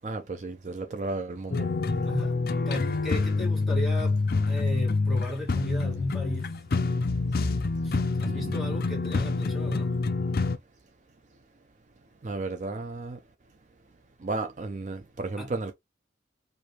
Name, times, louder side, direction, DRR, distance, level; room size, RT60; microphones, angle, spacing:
voice 1, 0.0-1.7 8.2-8.8 12.2-13.2 14.2-15.7, right 3 dB, 40° right, 0.5 m, -34 dB
sound 1, 1.5-10.6, left 3 dB, 55° left, 0.5 m, -27 dB
voice 2, 2.0-2.4 2.7-6.5 7.8-9.9 15.4-15.5, equal, ahead, 1.6 m, -36 dB
4.7 x 2.6 x 2.9 m
head